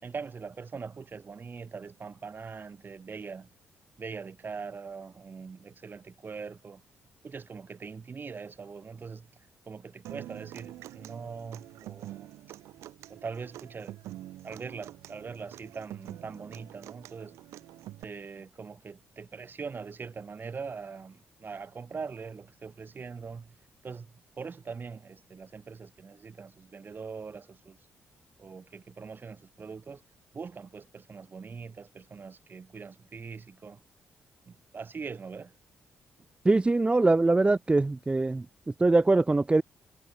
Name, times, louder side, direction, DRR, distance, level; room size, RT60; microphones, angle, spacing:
voice 1, 0.0-3.5 4.0-6.8 7.2-9.3 9.7-12.3 13.1-14.0 14.4-17.4 18.0-23.6 23.8-24.1 24.4-27.8 28.4-30.0 30.3-33.8 34.5-35.5, right 5 dB, 45° right, 5.3 m, -42 dB
Human voice / Acoustic guitar, 10.0-18.0, right 14 dB, 80° right, 2.1 m, -46 dB
voice 2, 36.4-38.4 38.8-39.6, right 2 dB, 20° right, 1.0 m, -22 dB
hypercardioid pair, 50°, 5 cm